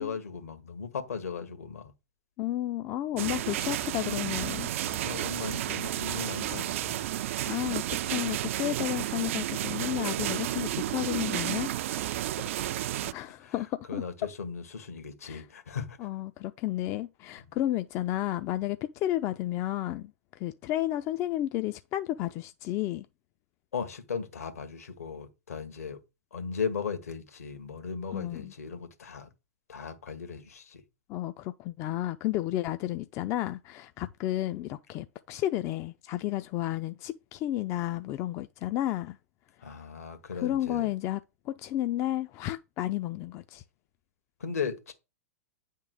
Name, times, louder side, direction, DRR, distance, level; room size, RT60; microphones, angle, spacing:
voice 1, 0.0-1.9 3.1-3.3 4.8-7.1 12.0-12.3 13.4-13.5 13.9-16.0 23.7-26.0 26.3-29.3 29.7-30.8 39.6-40.9 44.4-44.9, left 6 dB, 75° left, 1.7 m, -37 dB
voice 2, 2.4-4.7 7.5-11.7 12.1-12.3 13.1-14.0 15.2-15.4 16.0-20.1 20.4-23.1 28.1-28.5 31.1-39.2 40.3-41.2 41.5-43.6, left 14 dB, 35° left, 0.5 m, -32 dB
sound 1, 3.2-13.1, right 13 dB, 55° right, 0.4 m, -32 dB
9.3 x 3.7 x 6.4 m
figure-of-eight pair, 100°, 8 cm